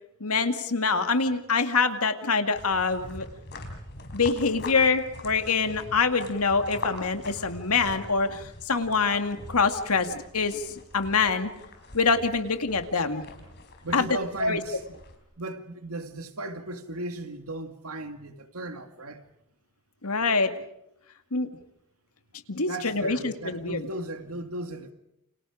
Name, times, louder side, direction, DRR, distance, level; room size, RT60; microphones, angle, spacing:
voice 1, 0.2-3.3 4.1-11.5 11.9-13.2 13.9-14.1 14.4-14.6 20.0-20.5 21.3-21.5 22.5-23.9, left 4 dB, 80° left, 2.2 m, -25 dB
sound 1, 2.5-15.2, left 2 dB, 50° left, 4.6 m, -43 dB
voice 2, 13.8-14.8 15.4-19.3 22.7-24.9, right 2 dB, 75° right, 2.2 m, -36 dB
29.5 x 28.5 x 5.0 m
head